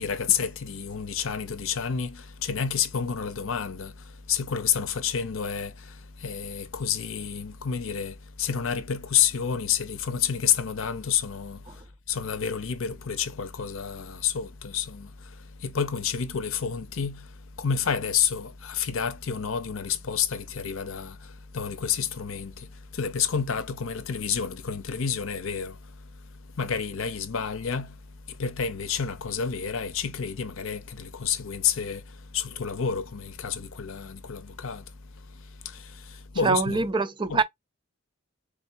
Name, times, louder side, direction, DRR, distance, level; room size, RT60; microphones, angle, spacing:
voice 1, 0.0-36.9 37.3-37.4, left 7 dB, 70° left, 0.7 m, -30 dB
voice 2, 36.4-37.4, right 4 dB, 25° right, 0.4 m, -24 dB
3.7 x 3.4 x 2.5 m
head